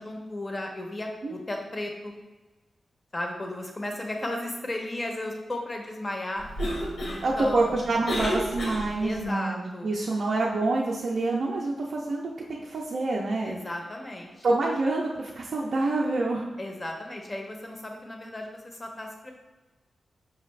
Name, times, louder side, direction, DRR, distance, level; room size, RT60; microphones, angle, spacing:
voice 1, 0.0-2.2 3.1-6.4 7.1-7.8 9.0-9.9 13.4-14.3 16.6-19.3, left 1 dB, 25° left, 2 dB, 0.6 m, -35 dB
Cough, 6.4-9.3, equal, 65° left, 0.8 m, -32 dB
voice 2, 7.2-13.6 14.4-16.5, right 2 dB, 60° right, -3 dB, 0.4 m, -27 dB
5.3 x 2.4 x 3.1 m, 1.2 s
wide cardioid pair, 145°, 0 cm